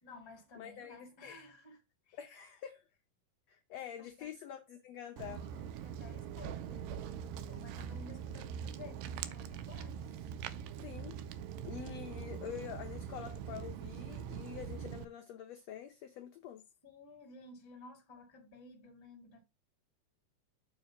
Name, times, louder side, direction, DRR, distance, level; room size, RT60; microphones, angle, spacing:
voice 1, 0.0-1.8 2.1-2.2 4.0-4.3 5.2-10.3 16.8-19.4, left 3 dB, 15° left, 1.0 m, -54 dB
voice 2, 0.6-1.3 2.2-2.8 3.5-5.4 10.8-11.2 11.6-16.6, left 10 dB, 75° left, 1.5 m, -46 dB
Walk footsteps, 5.2-15.1, right 8 dB, 85° right, 2.2 m, -43 dB
7.0 x 3.7 x 6.3 m
omnidirectional pair, 3.9 m